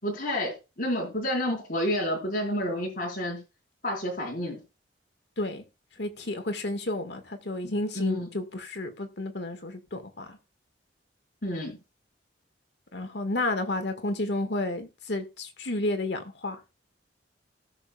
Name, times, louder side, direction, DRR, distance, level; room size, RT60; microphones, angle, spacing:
voice 1, 0.0-3.4 3.8-4.6 7.6-8.3 11.4-11.8, equal, 50° left, 4.5 m, -30 dB
voice 2, 6.0-10.4 12.9-16.6, left 2 dB, 65° left, 1.7 m, -31 dB
18.5 x 6.8 x 2.3 m
head